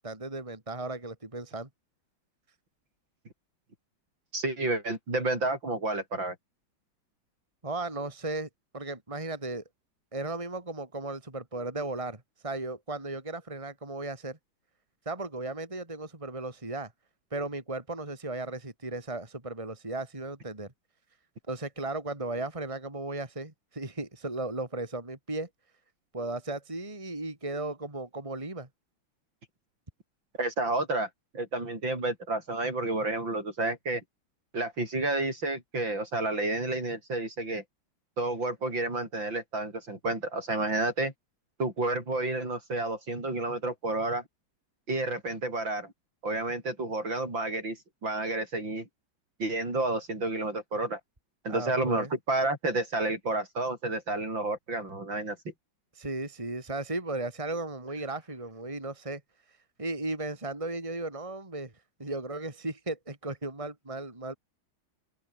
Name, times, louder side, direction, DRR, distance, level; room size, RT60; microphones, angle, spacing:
voice 1, 0.0-1.7 7.6-9.6 10.1-14.4 15.0-16.9 17.3-20.7 21.5-25.5 26.1-28.7 51.5-52.1 55.9-59.2 59.8-61.7 62.0-64.4, right 2 dB, 15° right, 3.1 m, -36 dB
voice 2, 4.3-6.4 30.4-31.1 31.3-34.0 34.5-37.6 38.2-41.1 41.6-44.2 44.9-45.9 46.2-47.8 48.0-48.9 49.4-51.0 51.4-55.4, right 2 dB, 65° right, 8.3 m, -30 dB
open air
omnidirectional pair, 2.2 m